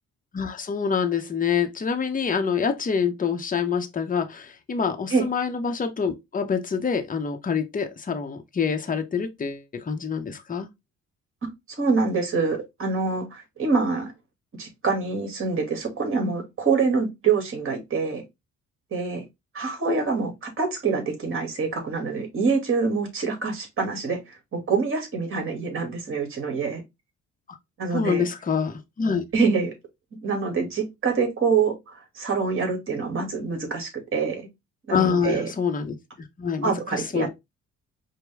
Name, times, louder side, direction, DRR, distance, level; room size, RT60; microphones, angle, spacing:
voice 1, 0.3-10.7 27.5-27.6 27.9-29.2 34.9-37.3, left 6 dB, 25° left, 0.8 m, -26 dB
voice 2, 11.8-14.1 14.6-18.2 18.9-19.2 19.5-26.8 27.8-28.3 29.3-29.7 30.2-34.4 34.9-35.5 36.6-37.3, right 4 dB, 45° right, 2.2 m, -25 dB
5.0 x 2.2 x 3.4 m
cardioid pair, 90°, 30 cm